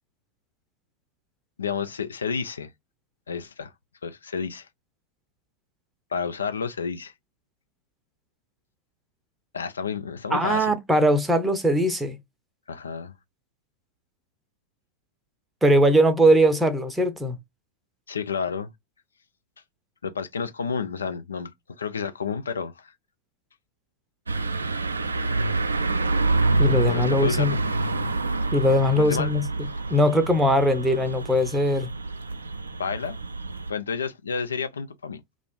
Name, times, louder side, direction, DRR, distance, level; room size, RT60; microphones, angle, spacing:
voice 1, 1.6-2.7 3.3-3.7 4.0-4.7 6.1-7.1 9.5-10.7 12.7-13.1 18.1-18.7 20.0-21.5 21.8-22.9 26.9-27.6 29.0-29.3 32.8-33.2 33.7-35.2, left 5 dB, 70° left, 0.3 m, -30 dB
voice 2, 10.3-12.2 15.6-17.4 26.6-27.5 28.5-29.4 29.9-31.9, equal, 10° right, 0.6 m, -20 dB
sound 1, 24.3-33.7, right 2 dB, 75° right, 0.3 m, -27 dB
2.4 x 2.3 x 3.5 m
figure-of-eight pair, 90°, 0 cm